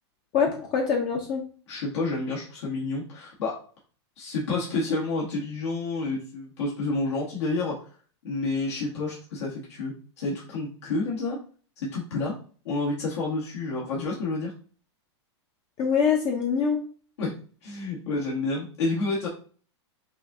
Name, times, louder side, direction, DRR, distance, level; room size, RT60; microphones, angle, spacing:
voice 1, 0.3-1.4 15.8-16.8, left 6 dB, 30° left, 1 dB, 0.7 m, -24 dB
voice 2, 1.7-3.6 4.2-7.8 8.2-11.4 11.8-12.3 12.7-14.5 17.2-17.3 17.6-19.3, left 3 dB, 75° left, -5 dB, 1.7 m, -29 dB
5.6 x 2.4 x 2.7 m, 0.41 s
supercardioid pair, 140°, 15 cm